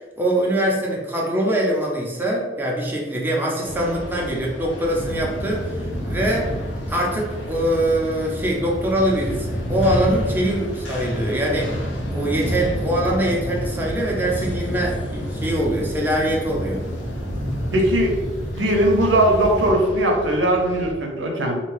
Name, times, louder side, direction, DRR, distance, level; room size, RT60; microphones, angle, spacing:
voice 1, 0.2-6.5 6.9-11.8 12.1-16.8, right 1 dB, 10° right, -3 dB, 0.6 m, -23 dB
sound 1, 3.6-20.9, left 1 dB, 80° left, 0.5 m, -35 dB
sound 2, 4.9-19.7, equal, 40° left, 1.4 m, -29 dB
voice 2, 17.7-18.2 18.6-21.6, right 1 dB, 75° right, 1 dB, 0.6 m, -19 dB
2.6 x 2.2 x 3.1 m, 1.3 s
head